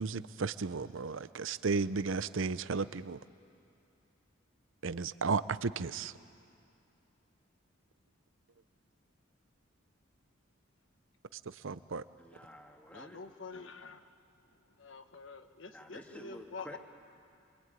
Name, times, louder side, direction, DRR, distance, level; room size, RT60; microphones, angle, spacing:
voice 1, 0.0-3.2 4.8-6.1 11.3-12.0, right 4 dB, 70° right, 15 dB, 0.6 m, -34 dB
voice 2, 12.2-13.2 15.7-16.8, equal, 5° left, 2 dB, 2.0 m, -50 dB
voice 3, 12.9-14.0 14.8-16.8, left 4 dB, 70° left, 8 dB, 1.2 m, -47 dB
26.0 x 24.0 x 9.4 m, 2.5 s
head